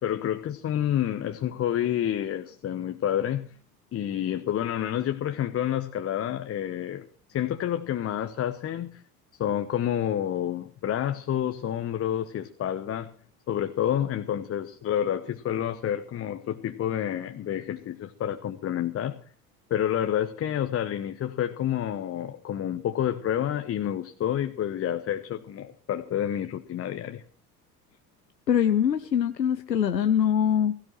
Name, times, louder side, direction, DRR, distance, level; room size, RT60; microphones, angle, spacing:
voice 1, 0.0-3.5 3.9-9.0 9.4-13.1 13.5-19.2 19.7-27.2, left 10 dB, 30° left, 8 dB, 1.0 m, -29 dB
voice 2, 28.5-30.8, left 9 dB, 90° left, 10 dB, 0.7 m, -23 dB
17.0 x 16.5 x 3.2 m, 0.42 s
figure-of-eight pair, 70°, 48 cm